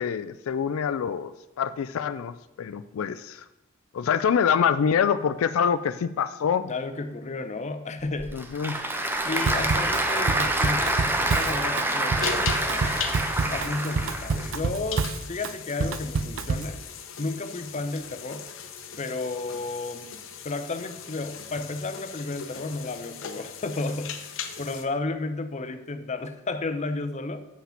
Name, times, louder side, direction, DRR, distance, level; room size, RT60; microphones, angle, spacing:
voice 1, 0.0-3.5 3.9-6.7 8.3-8.9, left 7 dB, 85° left, 13 dB, 0.4 m, -26 dB
voice 2, 6.7-8.4 9.2-13.0 13.5-16.8 17.2-18.5 19.0-20.1 20.4-27.5, left 3 dB, 35° left, 9 dB, 0.6 m, -33 dB
Applause / Crowd, 8.0-14.5, right 1 dB, 10° right, 0.8 m, -27 dB
Drum kit / Drum, 9.4-16.8, right 4 dB, 70° right, 0.4 m, -28 dB
sound 1, 12.2-24.8, left 7 dB, 65° left, 0.8 m, -38 dB
7.3 x 5.9 x 5.7 m, 0.94 s
head